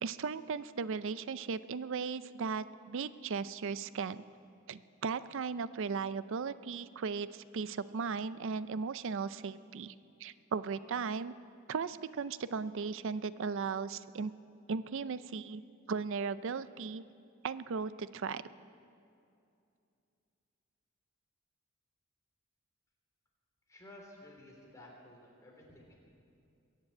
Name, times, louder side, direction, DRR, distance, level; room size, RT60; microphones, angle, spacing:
voice 1, 0.0-4.2 4.7-9.9 10.2-11.4 11.7-14.3 14.7-15.6 15.9-17.0 17.4-18.4, right 5 dB, 65° right, 15 dB, 0.5 m, -37 dB
voice 2, 23.7-26.0, left 1 dB, 15° left, -2 dB, 3.3 m, -54 dB
21.5 x 7.5 x 8.6 m, 2.5 s
head